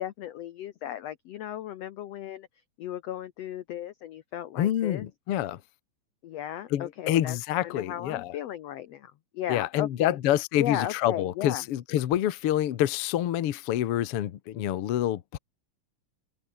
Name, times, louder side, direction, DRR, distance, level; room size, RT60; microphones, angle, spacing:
voice 1, 0.0-2.5 2.8-5.0 6.2-7.4 7.6-10.2 10.6-11.6, left 11 dB, 80° left, 1.4 m, -35 dB
voice 2, 4.6-5.6 6.7-8.3 9.5-15.4, left 12 dB, 60° left, 1.5 m, -27 dB
open air
omnidirectional pair, 4.1 m